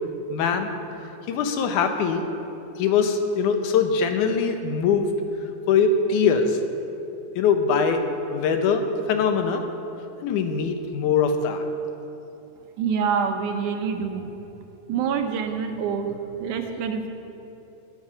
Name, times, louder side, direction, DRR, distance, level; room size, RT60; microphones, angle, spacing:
voice 1, 0.3-0.7 1.3-2.2 2.8-5.1 5.7-6.6 7.4-8.0 8.3-8.8 9.1-9.6 10.2-11.6, left 6 dB, 85° left, 6 dB, 2.4 m, -22 dB
voice 2, 12.8-14.3 14.9-17.1, right 6 dB, 85° right, 5 dB, 2.5 m, -26 dB
21.0 x 7.9 x 5.7 m, 2.8 s
omnidirectional pair, 3.4 m